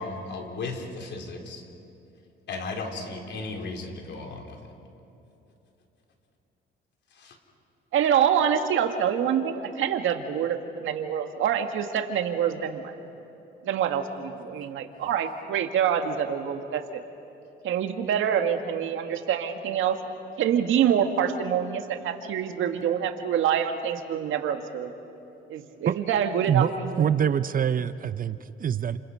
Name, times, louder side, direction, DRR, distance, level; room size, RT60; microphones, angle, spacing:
voice 1, 0.0-1.6 2.5-4.6 7.1-7.4, left 3 dB, 65° left, 2 dB, 3.9 m, -35 dB
voice 2, 7.9-12.8 13.6-17.0 17.6-20.0 20.4-24.9 25.5-27.1, right 8 dB, 80° right, 6 dB, 1.8 m, -26 dB
voice 3, 27.0-29.0, right 8 dB, 45° right, 14 dB, 0.7 m, -25 dB
30.0 x 28.5 x 5.8 m, 2.8 s
cardioid pair, 90°, 20 cm